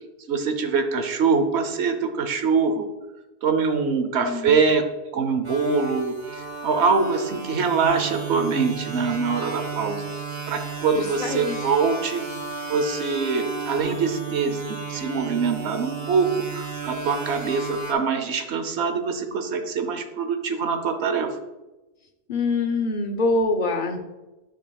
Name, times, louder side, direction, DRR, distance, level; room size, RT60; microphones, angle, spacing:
voice 1, 0.3-2.9 3.4-4.8 5.1-6.1 6.6-10.1 10.5-12.2 12.7-21.3, right 5 dB, 85° right, 7 dB, 1.0 m, -24 dB
voice 2, 4.2-4.7 10.9-11.6 22.3-24.0, left 3 dB, 55° left, 4 dB, 1.0 m, -25 dB
sound 1, 5.4-17.9, right 5 dB, 65° right, 1.3 m, -33 dB
10.0 x 5.9 x 2.3 m, 1.1 s
omnidirectional pair, 1.1 m